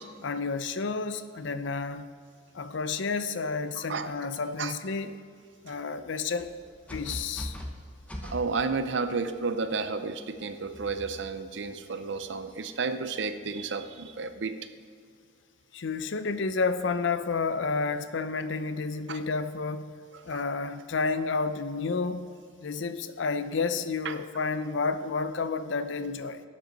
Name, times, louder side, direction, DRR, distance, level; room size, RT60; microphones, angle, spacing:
voice 1, 0.2-2.1 2.5-5.2 5.6-6.5 6.9-7.6 15.7-19.9 20.3-22.3 22.6-26.4, left 4 dB, 70° left, 11 dB, 0.5 m, -30 dB
voice 2, 3.8-4.1 4.6-4.7 5.7-5.8 8.2-14.6 19.1-19.2 20.1-20.4 24.0-24.2, right 4 dB, 65° right, 10 dB, 0.6 m, -32 dB
sound 1, 6.4-9.4 10.6-11.5 12.2-12.5 14.0-14.3, equal, 5° left, 0.8 m, -41 dB
12.0 x 7.8 x 3.9 m, 2.2 s
head